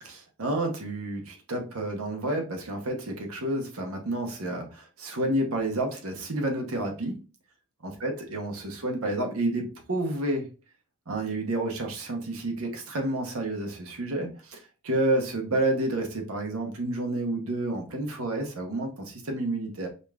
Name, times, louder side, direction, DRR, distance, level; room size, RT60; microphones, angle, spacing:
voice 1, 0.0-7.2 7.8-10.5 11.1-19.9, right 1 dB, 80° right, 3 dB, 0.9 m, -30 dB
5.2 x 2.5 x 2.3 m, 0.34 s
head